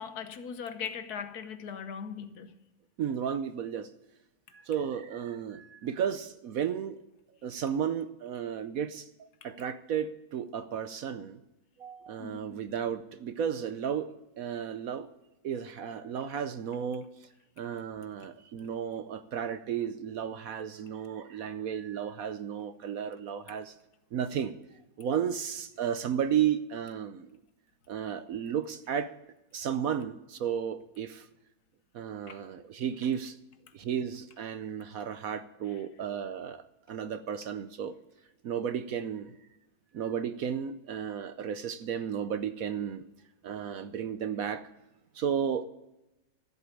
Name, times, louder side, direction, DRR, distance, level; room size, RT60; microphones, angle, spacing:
voice 1, 0.0-2.5 12.2-12.6 32.3-32.4, left 7 dB, 65° left, 1.4 m, -39 dB
voice 2, 3.0-3.9 4.5-7.0 7.4-11.4 11.8-14.1 14.4-15.1 15.4-17.3 17.6-23.7 24.1-24.5 25.0-27.4 27.9-29.1 29.5-31.3 31.9-33.4 33.7-37.9 38.4-39.4 39.9-43.0 43.4-44.7 45.1-45.6, right 8 dB, 65° right, 1.0 m, -33 dB
13.5 x 8.3 x 8.3 m
omnidirectional pair, 1.9 m